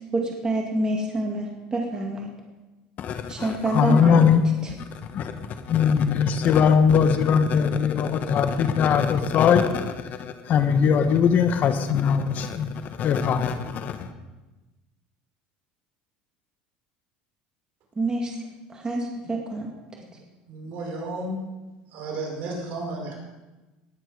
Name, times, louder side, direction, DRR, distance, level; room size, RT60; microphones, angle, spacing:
voice 1, 0.1-2.3 3.3-4.3 18.0-18.3 18.7-19.7, right 2 dB, 20° right, 2.3 m, -27 dB
voice 2, 3.0-4.4 4.9-5.4 5.7-12.7 13.0-14.1, left 7 dB, 50° left, 1.2 m, -21 dB
voice 3, 20.5-21.4 21.9-23.1, right 2 dB, 55° right, 5.1 m, -33 dB
19.0 x 8.8 x 5.0 m
supercardioid pair, 105°, 4 cm